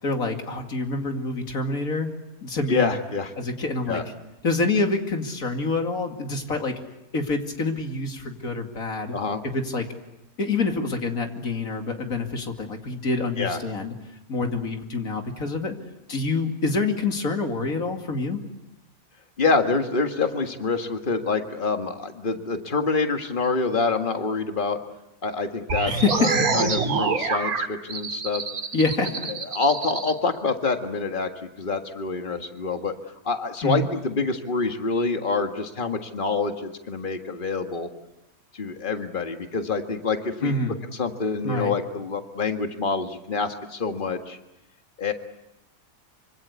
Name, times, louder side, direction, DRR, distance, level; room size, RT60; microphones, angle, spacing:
voice 1, 0.0-2.1 2.4-2.9 3.4-4.0 4.4-6.7 7.1-9.2 9.4-9.9 10.4-13.9 14.3-15.7 16.1-18.4 25.9-26.5 28.7-29.2 33.6-33.9 40.4-40.8 41.4-41.7, left 3 dB, 70° left, 4 dB, 2.9 m, -26 dB
voice 2, 2.7-3.3 3.9-4.0 9.1-9.4 13.4-13.6 19.4-24.8 25.2-25.9 26.5-28.4 29.3-31.3 31.6-32.9 33.3-37.9 38.5-40.5 41.0-44.4 45.0-45.1, left 4 dB, 35° left, 6 dB, 1.9 m, -26 dB
sound 1, 25.7-30.1, right 4 dB, 85° right, 3.1 m, -26 dB
25.5 x 25.5 x 8.2 m, 0.89 s
omnidirectional pair, 1.5 m